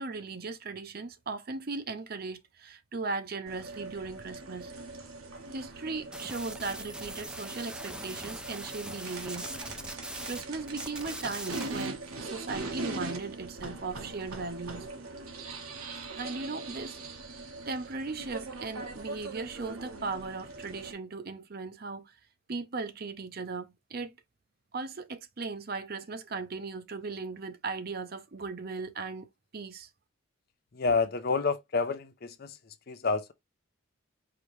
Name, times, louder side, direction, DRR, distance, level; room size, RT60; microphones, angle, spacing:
voice 1, 0.0-4.7 5.5-9.5 10.3-14.9 16.2-17.0 17.7-22.2 22.5-24.2 24.7-29.3 29.5-29.9, right 3 dB, 45° right, 0.6 m, -37 dB
sound 1, 3.5-20.9, right 3 dB, 85° right, 1.2 m, -41 dB
sound 2, 6.1-10.4 10.7-11.9, right 1 dB, 5° right, 0.4 m, -41 dB
voice 2, 30.7-33.3, left 4 dB, 45° left, 0.5 m, -29 dB
4.9 x 2.9 x 3.1 m
head